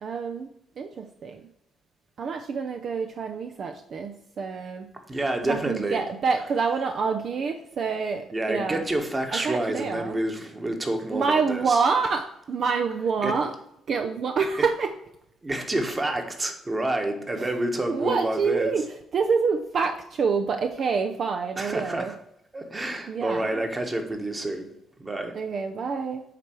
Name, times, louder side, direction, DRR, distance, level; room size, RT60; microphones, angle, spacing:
voice 1, 0.0-0.5 0.8-1.4 2.2-4.9 5.5-8.8 9.3-10.2 11.1-13.5 13.9-14.9 17.4-17.5 17.9-18.8 19.1-22.1 23.1-23.6 25.3-26.2, right 5 dB, 55° right, 5 dB, 0.5 m, -27 dB
voice 2, 5.1-6.0 8.3-11.8 13.2-13.4 15.4-18.7 21.6-22.2 22.5-24.7 25.0-25.3, right 1 dB, 25° right, 5 dB, 1.4 m, -28 dB
8.3 x 3.3 x 4.5 m, 0.78 s
supercardioid pair, 60°, 0 cm